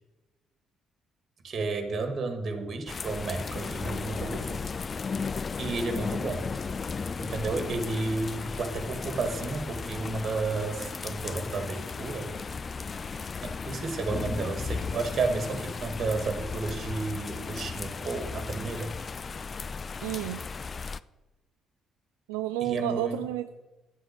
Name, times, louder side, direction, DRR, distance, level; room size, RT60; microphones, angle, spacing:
voice 1, 1.4-4.7 5.6-6.5 7.2-12.3 13.4-18.9 22.6-23.2, right 3 dB, 45° right, 6 dB, 1.8 m, -32 dB
sound 1, 2.9-21.0, left 5 dB, 35° left, 0.4 m, -35 dB
voice 2, 20.0-20.5 22.3-23.5, right 12 dB, 75° right, 10 dB, 0.4 m, -31 dB
10.0 x 7.8 x 8.6 m, 1.1 s
figure-of-eight pair, 45°, 0 cm